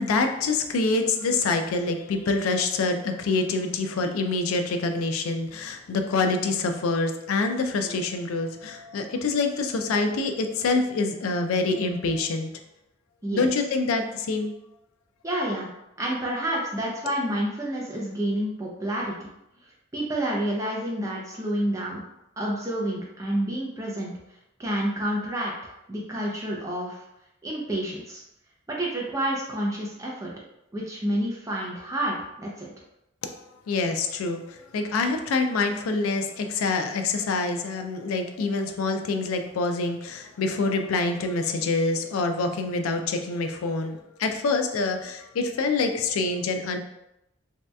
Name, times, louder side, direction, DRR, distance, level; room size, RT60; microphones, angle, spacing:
voice 1, 0.0-12.5 13.3-14.5 33.7-46.8, left 3 dB, 90° left, 6 dB, 0.4 m, -26 dB
voice 2, 15.2-15.7 16.0-19.1 19.9-22.0 22.4-24.1 24.6-27.0 27.4-28.2 28.7-30.3 30.7-32.7, right 1 dB, 15° right, -3 dB, 0.4 m, -29 dB
3.1 x 2.7 x 2.2 m, 0.85 s
head